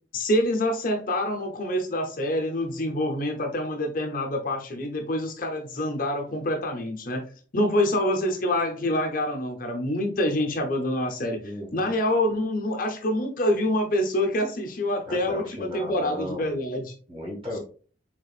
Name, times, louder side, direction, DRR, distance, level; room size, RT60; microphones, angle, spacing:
voice 1, 0.1-7.3 7.5-11.4 11.7-16.9, left 1 dB, 45° left, 3 dB, 0.8 m, -26 dB
voice 2, 11.4-11.9 15.1-16.5 17.1-17.6, left 1 dB, 30° right, -2 dB, 2.1 m, -35 dB
4.9 x 3.6 x 2.4 m, 0.39 s
head